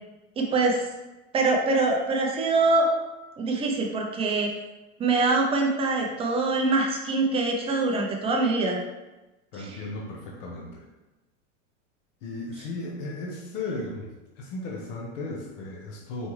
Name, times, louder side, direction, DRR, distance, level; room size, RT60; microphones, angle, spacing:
voice 1, 0.4-0.8 1.3-2.9 3.4-4.5 5.0-8.8 9.6-9.8, right 3 dB, 15° right, 0 dB, 0.4 m, -24 dB
voice 2, 9.5-10.9 12.2-16.3, left 2 dB, 70° left, -2 dB, 1.0 m, -35 dB
4.4 x 3.3 x 3.1 m, 1.1 s
supercardioid pair, 140°, 39 cm